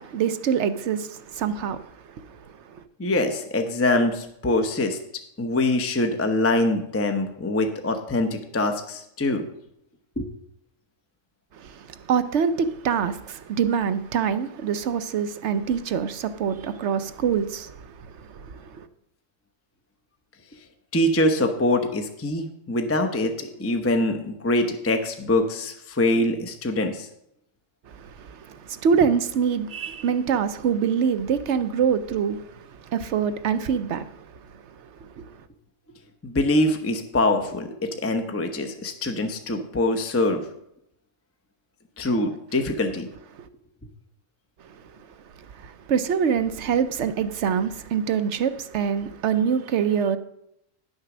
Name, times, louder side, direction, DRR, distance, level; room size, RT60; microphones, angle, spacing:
voice 1, 0.0-2.8 11.5-18.9 27.9-34.3 34.5-35.4 43.3-43.4 44.6-45.0 45.4-50.2, right 7 dB, 65° right, 0.9 m, -25 dB
voice 2, 3.0-5.0 5.4-9.5 10.2-10.3 20.9-27.1 36.2-40.4 42.0-43.1, left 1 dB, 15° left, 0.7 m, -24 dB
10.5 x 6.6 x 6.0 m
omnidirectional pair, 1.4 m